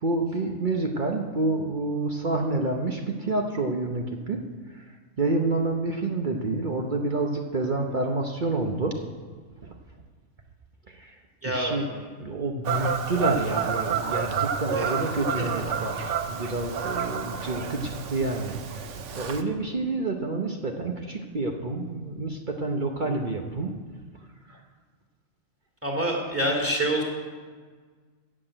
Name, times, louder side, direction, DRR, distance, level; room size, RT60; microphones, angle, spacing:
voice 1, 0.0-4.4 4.7-4.8 5.2-9.0 9.6-9.7 10.9-11.1 11.4-11.8 12.2-23.7 24.5-24.6, right 2 dB, 40° right, 2 dB, 0.9 m, -28 dB
voice 2, 11.4-12.0 14.8-14.9 15.4-15.5 25.8-27.0, right 1 dB, 10° right, -1 dB, 2.3 m, -27 dB
Fowl / Bird vocalization bird call bird song, 12.6-19.4, right 7 dB, 70° right, 1.1 m, -30 dB
14.0 x 6.0 x 8.9 m, 1.6 s
omnidirectional pair, 1.4 m